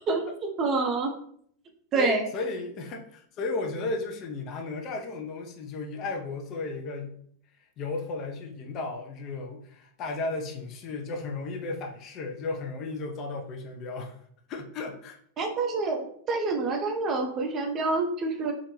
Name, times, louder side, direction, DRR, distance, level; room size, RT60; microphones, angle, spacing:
voice 1, 0.1-1.1 1.9-2.2 15.4-18.5, right 3 dB, 30° right, 3 dB, 0.5 m, -27 dB
voice 2, 1.9-7.1 7.8-14.1 14.5-15.2, left 3 dB, 35° left, 2 dB, 0.4 m, -34 dB
2.4 x 2.1 x 3.0 m, 0.63 s
figure-of-eight pair, 90°, 0 cm